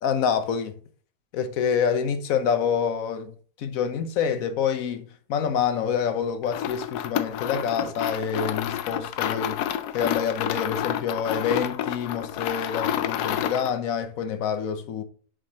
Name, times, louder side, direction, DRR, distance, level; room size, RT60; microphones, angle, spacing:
voice 1, 0.0-0.8 1.3-9.6 9.9-15.0, left 7 dB, 65° left, 1.2 m, -27 dB
sound 1, 6.4-13.8, left 10 dB, 90° left, 1.2 m, -29 dB
sound 2, 7.7-9.6 12.2-13.6, right 1 dB, 55° right, 2.6 m, -48 dB
7.4 x 5.1 x 2.8 m
omnidirectional pair, 1.6 m